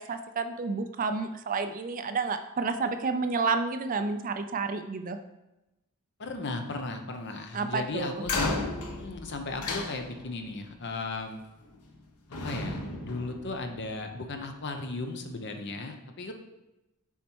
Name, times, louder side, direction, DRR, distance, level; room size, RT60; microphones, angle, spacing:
voice 1, 0.0-5.2 7.5-8.2, right 4 dB, 40° right, 8 dB, 0.4 m, -30 dB
voice 2, 6.2-11.4 12.4-16.3, left 3 dB, 50° left, 5 dB, 0.8 m, -36 dB
sound 1, 8.2-10.5 11.6-12.0 12.3-14.1, left 3 dB, 85° left, 1.0 m, -34 dB
7.3 x 4.2 x 4.6 m, 0.96 s
head